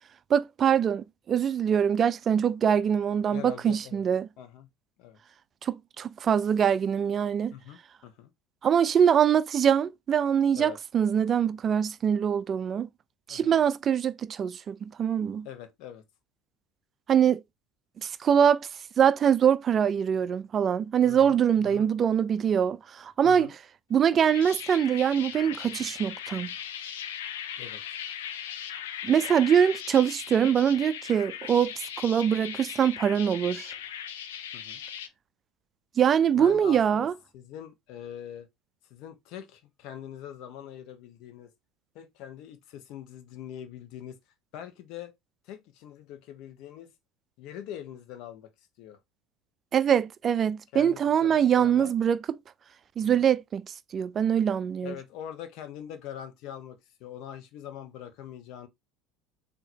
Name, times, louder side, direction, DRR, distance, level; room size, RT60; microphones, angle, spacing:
voice 1, 0.3-4.3 5.6-7.5 8.6-12.9 13.3-15.5 17.1-17.4 18.0-18.6 19.0-23.5 23.9-26.5 29.0-33.7 36.0-37.1 49.7-52.2 53.0-54.9, right 8 dB, 40° right, 0.3 m, -24 dB
voice 2, 3.3-4.0 4.4-4.7 5.0-5.2 7.5-8.3 10.5-10.8 13.3-13.6 15.4-16.0 21.0-21.9 23.2-23.5 27.6-27.8 34.5-34.8 36.3-37.1 37.3-38.5 38.9-41.5 41.9-44.2 44.5-45.1 45.5-46.9 47.4-48.5 48.8-49.0 50.7-51.9 53.0-53.3 54.8-58.7, left 10 dB, 60° left, 1.1 m, -43 dB
sound 1, 24.0-35.1, left 9 dB, 80° left, 0.7 m, -39 dB
4.0 x 2.8 x 4.5 m
hypercardioid pair, 80°, 0 cm